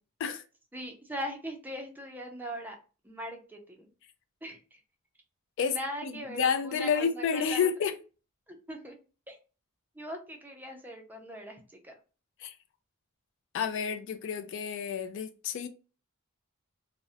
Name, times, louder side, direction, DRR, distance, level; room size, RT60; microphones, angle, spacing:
voice 1, 0.7-2.8 3.0-3.9 4.4-4.6 5.7-7.7 8.5-9.0 9.3-9.4 10.0-11.9, equal, 10° right, 0.4 m, -40 dB
voice 2, 5.6-7.9 12.4-12.6 13.5-15.7, left 6 dB, 60° left, 0.3 m, -30 dB
2.5 x 2.0 x 2.5 m
head